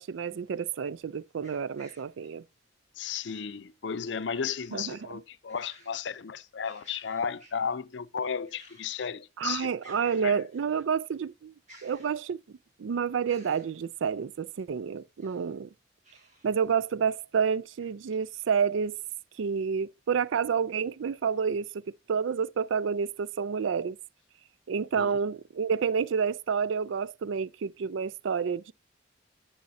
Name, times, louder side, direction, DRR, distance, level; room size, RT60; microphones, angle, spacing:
voice 1, 0.0-2.4 4.7-5.0 9.4-11.5 11.8-12.4 12.8-15.7 16.4-19.0 19.4-21.8 22.1-24.0 24.7-28.7, right 6 dB, 85° right, 0.4 m, -29 dB
sound 1, 1.4-2.1 3.2-3.6 4.4-4.8 5.2-6.1 6.4-7.7 8.4-9.1 9.4-9.5 9.8-10.9 11.7-12.5 13.3-13.7 15.0-15.6 16.0-16.5 17.0-17.1 17.8-17.9, right 1 dB, 40° right, 4.9 m, -57 dB
voice 2, 3.0-9.7 10.0-10.4 25.0-25.2, left 6 dB, 70° left, 0.5 m, -34 dB
10.5 x 7.6 x 2.7 m
head